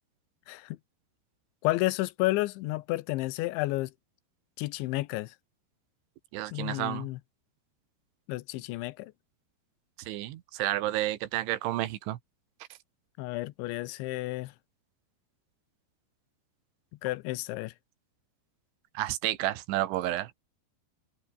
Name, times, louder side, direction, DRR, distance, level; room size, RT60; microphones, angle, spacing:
voice 1, 0.5-0.8 1.6-3.9 4.6-5.3 6.5-7.2 8.3-9.1 13.2-14.5 17.0-17.7, left 19 dB, 90° left, 3.2 m, -31 dB
voice 2, 6.3-7.1 10.1-12.2 19.0-20.3, right 15 dB, 90° right, 3.8 m, -31 dB
omnidirectional pair, 5.3 m